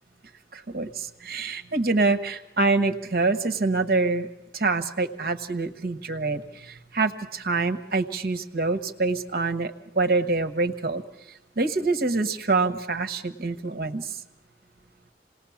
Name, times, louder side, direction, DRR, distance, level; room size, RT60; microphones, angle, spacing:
voice 1, 0.5-4.3 4.5-11.0 11.6-14.2, right 3 dB, 60° right, 9 dB, 1.2 m, -26 dB
28.0 x 19.0 x 7.2 m, 0.98 s
head